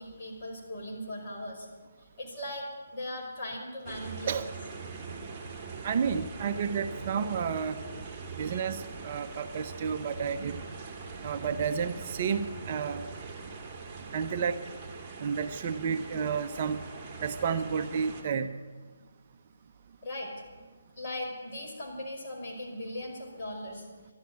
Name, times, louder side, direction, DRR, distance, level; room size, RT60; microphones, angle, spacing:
voice 1, 0.0-1.7 2.0-4.5 8.2-8.6 14.3-14.4 20.0-20.3 21.0-23.9, left 1 dB, 35° left, -2 dB, 5.3 m, -39 dB
sound 1, 3.8-18.2, right 4 dB, 20° right, 2.8 m, -42 dB
voice 2, 5.8-7.8 8.4-10.6 11.2-13.1 14.1-14.6 15.2-16.8 17.2-18.6, right 6 dB, 40° right, 8 dB, 0.6 m, -31 dB
12.5 x 12.0 x 9.5 m, 1.4 s
figure-of-eight pair, 145°, 0 cm